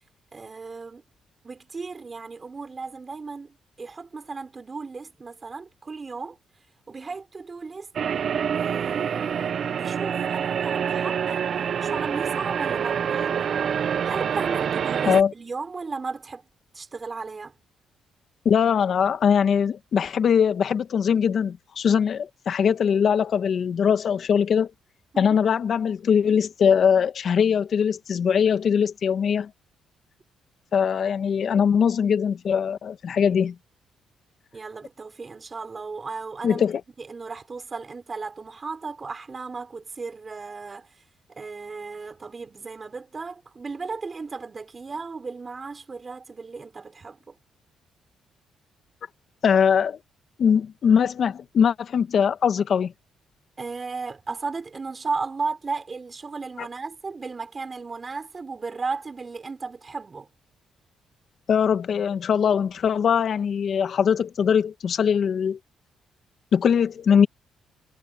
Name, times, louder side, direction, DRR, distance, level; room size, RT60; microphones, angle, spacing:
voice 1, 0.3-1.0 1.4-6.4 6.9-7.9 8.5-11.5 11.8-13.5 14.0-16.4 16.7-17.6 25.1-25.4 34.5-36.6 37.0-40.9 41.3-47.4 53.6-60.3, right 4 dB, 30° right, 4.5 m, -35 dB
sound 1, 8.0-15.2, right 8 dB, 55° right, 0.6 m, -26 dB
voice 2, 18.4-24.7 25.2-29.5 30.7-33.5 36.4-36.8 49.4-50.0 50.4-52.9 56.6-56.7 61.5-65.6 66.5-67.3, left 7 dB, 55° left, 1.7 m, -21 dB
cardioid pair, 90°, 0 cm